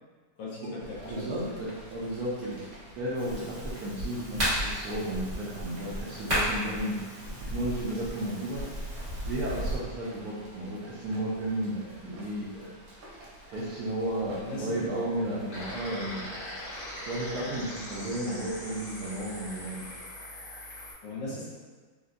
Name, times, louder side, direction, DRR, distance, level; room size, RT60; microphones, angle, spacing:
voice 1, 0.4-1.6 14.4-14.8 21.0-21.5, left 2 dB, 70° left, -5 dB, 1.3 m, -38 dB
Rain, 0.8-20.0, equal, 90° right, 1.6 m, -51 dB
voice 2, 1.1-2.6 3.0-7.1 7.4-8.7 9.2-12.7 13.5-16.3 17.0-19.8, right 1 dB, 70° right, -7 dB, 0.9 m, -33 dB
sound 1, 3.1-9.8, equal, 40° right, 1.6 m, -34 dB
sound 2, 15.5-20.9, left 1 dB, 55° left, 0.8 m, -41 dB
3.8 x 2.1 x 2.5 m, 1.4 s
omnidirectional pair, 2.0 m